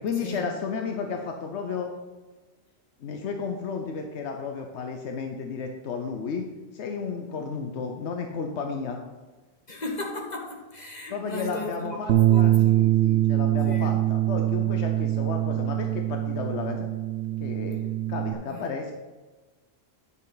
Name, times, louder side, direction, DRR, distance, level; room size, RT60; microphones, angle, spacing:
voice 1, 0.0-1.9 3.0-6.5 6.7-9.0 11.1-16.9 17.4-17.8 18.1-18.9, left 5 dB, 90° left, 3 dB, 1.1 m, -33 dB
voice 2, 9.7-12.8 13.7-13.9 18.5-18.7, left 1 dB, 40° left, 0 dB, 1.5 m, -36 dB
Bass guitar, 12.1-18.3, right 14 dB, 65° right, 0.8 m, -23 dB
10.0 x 6.7 x 4.0 m, 1.2 s
omnidirectional pair, 1.1 m